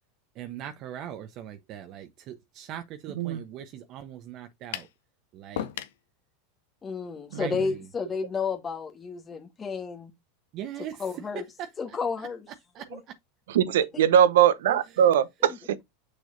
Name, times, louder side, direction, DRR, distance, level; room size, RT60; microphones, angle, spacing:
voice 1, 0.3-4.9 5.3-5.7 7.3-7.9 10.5-11.3 11.6-12.3 12.7-13.2 14.9-15.1, right 10 dB, 45° right, 1.0 m, -41 dB
sound 1, 4.7-5.0 5.6-6.0, left 11 dB, 70° left, 0.9 m, -34 dB
voice 2, 6.8-10.1 11.0-11.4 11.8-12.4 13.9-14.0 14.7-14.8, left 5 dB, 25° left, 1.4 m, -31 dB
voice 3, 13.5-15.8, right 9 dB, 75° right, 0.9 m, -21 dB
6.6 x 6.2 x 2.7 m
hypercardioid pair, 100°, 0 cm